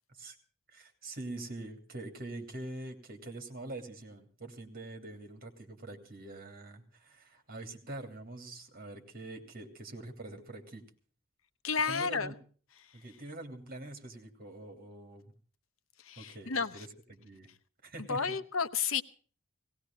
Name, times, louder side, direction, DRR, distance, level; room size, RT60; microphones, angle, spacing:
voice 1, 0.7-10.8 11.8-12.4 12.9-15.2 16.2-17.5 17.8-18.4, right 2 dB, 45° right, 3.1 m, -44 dB
voice 2, 11.6-12.3 16.1-16.9 18.1-19.0, left 5 dB, 80° left, 1.1 m, -31 dB
18.5 x 17.5 x 3.8 m
head